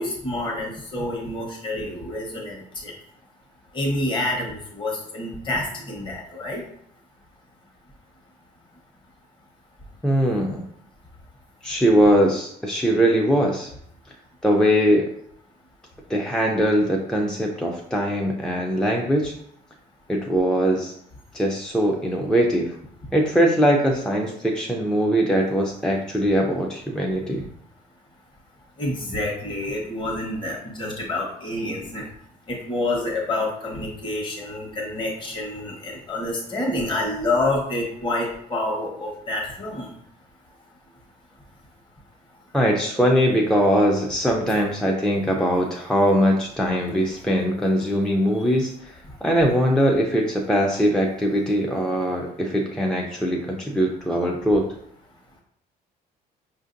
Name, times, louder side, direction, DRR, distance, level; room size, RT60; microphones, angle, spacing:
voice 1, 0.0-2.9 3.7-6.6 28.8-32.0 32.5-39.9, left 2 dB, 30° left, -2 dB, 1.0 m, -28 dB
voice 2, 10.0-10.6 11.6-13.7 14.4-15.1 16.1-19.3 20.1-20.9 21.3-22.8 23.1-27.4 42.5-54.7, equal, 5° left, 0 dB, 0.4 m, -21 dB
5.0 x 2.6 x 2.5 m, 0.68 s
cardioid pair, 110°, 17 cm